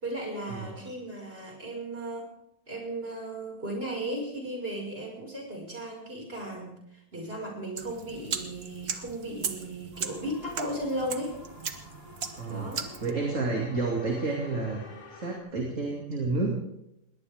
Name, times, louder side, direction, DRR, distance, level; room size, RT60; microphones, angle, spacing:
voice 1, 0.0-2.3 2.7-11.4 12.5-12.9, right 1 dB, 35° right, 0 dB, 6.0 m, -36 dB
sound 1, 7.8-13.1, right 6 dB, 70° right, 1.8 m, -37 dB
sound 2, 9.9-15.4, left 3 dB, 80° left, 3.5 m, -50 dB
voice 2, 12.4-12.7 13.0-14.8 15.1-16.6, right 3 dB, 50° right, -1 dB, 3.0 m, -30 dB
21.5 x 18.0 x 3.6 m, 0.81 s
omnidirectional pair, 1.7 m